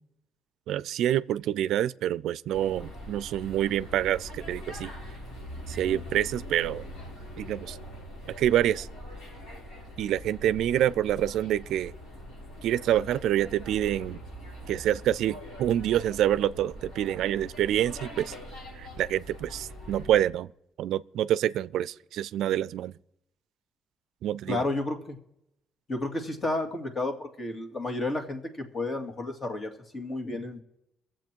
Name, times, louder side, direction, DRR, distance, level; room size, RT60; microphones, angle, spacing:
voice 1, 0.7-4.9 5.7-6.8 7.4-7.8 8.4-8.9 10.0-11.9 12.6-14.2 14.7-18.3 18.8-20.5 20.8-22.9 24.2-24.6, right 11 dB, 80° right, 0.4 m, -27 dB
sound 1, 2.5-20.2, equal, 85° left, 5.1 m, -42 dB
voice 2, 24.5-25.2 25.9-30.6, left 2 dB, 40° left, 2.3 m, -32 dB
22.0 x 7.6 x 4.5 m
cardioid pair, 90°, 0 cm